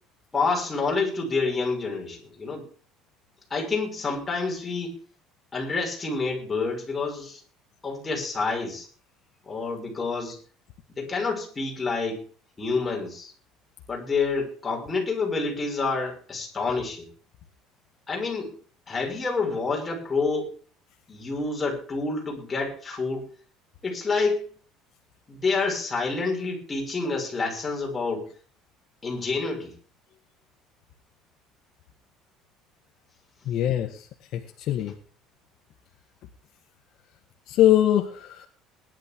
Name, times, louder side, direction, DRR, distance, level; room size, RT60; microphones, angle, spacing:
voice 1, 0.3-2.7 3.5-5.0 5.5-7.4 7.8-8.9 9.4-10.4 10.9-12.2 12.6-13.3 13.9-17.1 18.1-18.5 18.9-20.5 21.1-23.3 23.8-24.5 25.3-28.3 29.0-29.8, left 4 dB, 15° left, 0 dB, 6.2 m, -28 dB
voice 2, 33.4-34.9 37.5-38.5, left 12 dB, 55° left, 4 dB, 1.7 m, -23 dB
20.5 x 11.5 x 3.7 m, 0.41 s
cardioid pair, 155°, 0 cm